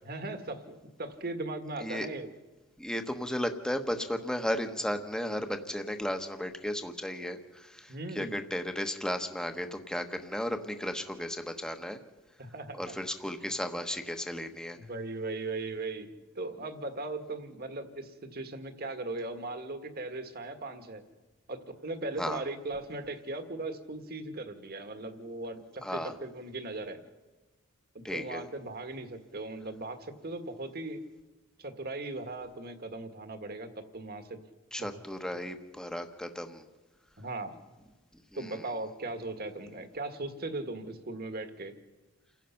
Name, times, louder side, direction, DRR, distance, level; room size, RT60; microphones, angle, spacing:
voice 1, 0.0-2.3 7.9-8.4 12.4-12.9 14.7-16.1 16.3-21.0 21.5-27.0 27.9-31.0 31.6-34.4 34.8-34.9 35.2-35.3 37.2-37.6 38.4-41.7, right 2 dB, 45° right, 8 dB, 1.7 m, -38 dB
voice 2, 2.8-12.0 12.8-14.8 22.2-22.4 25.8-26.1 28.0-28.4 34.7-36.6 38.4-38.6, equal, 5° left, 6 dB, 1.1 m, -34 dB
29.0 x 16.0 x 5.8 m, 1.2 s
head